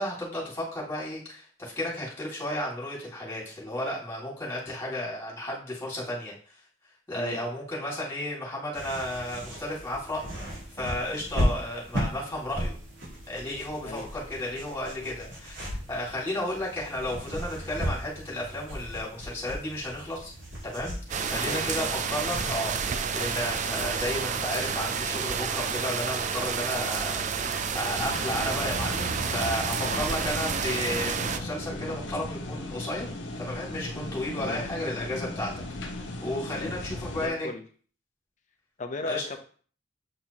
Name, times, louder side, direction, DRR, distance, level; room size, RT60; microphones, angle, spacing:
voice 1, 0.0-6.4 7.1-12.8 13.3-20.3 20.6-21.0 21.2-33.1 33.4-35.6 35.9-37.5 39.0-39.2, left 1 dB, 15° left, -5 dB, 2.4 m, -33 dB
sound 1, 8.7-24.2, equal, 85° right, 3.0 m, -36 dB
sound 2, 21.1-31.4, right 6 dB, 40° right, 0.4 m, -30 dB
voice 2, 21.3-22.0 29.8-30.0 34.4-34.7 36.5-36.7 37.2-37.6 38.8-39.4, left 3 dB, 40° left, 6 dB, 0.7 m, -36 dB
sound 3, 27.9-37.3, left 1 dB, 75° left, 0.8 m, -37 dB
7.8 x 4.3 x 2.9 m, 0.43 s
head